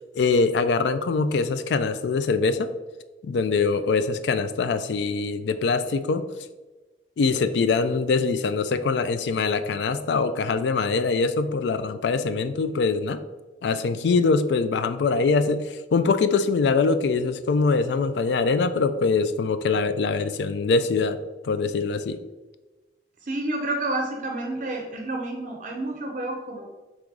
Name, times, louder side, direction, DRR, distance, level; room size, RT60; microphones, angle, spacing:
voice 1, 0.2-2.7 3.2-6.3 7.2-13.2 13.6-21.2 21.4-22.2, left 4 dB, 75° left, 11 dB, 0.3 m, -23 dB
voice 2, 23.2-26.7, right 2 dB, 45° right, 1 dB, 0.5 m, -29 dB
3.7 x 3.0 x 4.6 m, 1.2 s
head